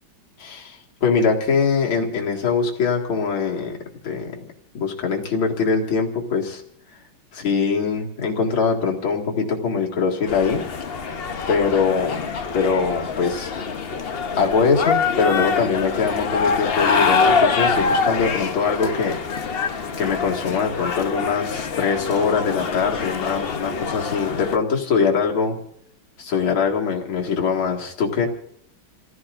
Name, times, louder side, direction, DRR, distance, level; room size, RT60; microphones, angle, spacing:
voice 1, 0.4-3.8 4.0-4.3 4.7-6.6 7.3-10.6 11.5-13.5 14.3-25.6 26.2-28.3, left 5 dB, 80° left, 0 dB, 3.0 m, -22 dB
sound 1, 10.3-24.6, left 5 dB, 55° left, 0.6 m, -24 dB
29.0 x 16.0 x 2.6 m, 0.73 s
omnidirectional pair, 2.3 m